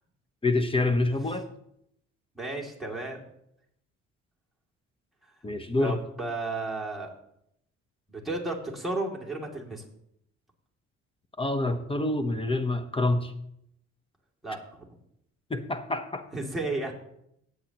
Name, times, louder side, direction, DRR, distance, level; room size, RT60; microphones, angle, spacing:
voice 1, 0.4-1.5 5.4-6.0 11.4-13.3 15.5-16.3, left 2 dB, 20° left, 9 dB, 0.9 m, -27 dB
voice 2, 2.3-3.2 5.8-7.2 8.1-9.8 14.4-14.9 16.3-16.9, right 2 dB, ahead, -3 dB, 2.6 m, -33 dB
16.5 x 8.1 x 3.0 m, 0.76 s
cardioid pair, 90°, 30 cm